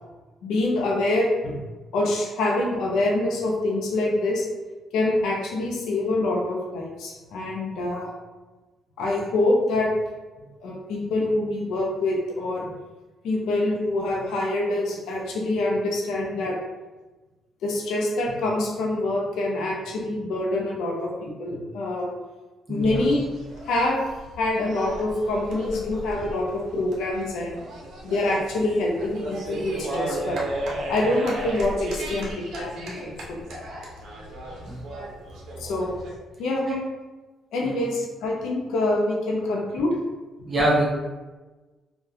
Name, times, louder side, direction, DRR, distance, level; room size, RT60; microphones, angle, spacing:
voice 1, 0.4-1.6 1.9-4.5 4.9-8.1 9.0-9.9 10.6-12.6 13.2-16.5 17.6-22.1 22.7-23.3 23.6-24.0 24.4-27.6 28.0-30.4 30.9-33.4 35.6-36.0 36.4-36.6 37.5-39.9, left 2 dB, 85° left, -1 dB, 0.5 m, -25 dB
voice 2, 22.7-23.1 34.6-34.8 36.7-36.8 37.6-37.7 40.5-40.8, right 1 dB, 30° right, -5 dB, 0.6 m, -24 dB
sound 1, 22.8-36.2, right 1 dB, 75° right, 0.6 m, -35 dB
2.3 x 2.2 x 2.7 m, 1.2 s
cardioid pair, 90°, 0 cm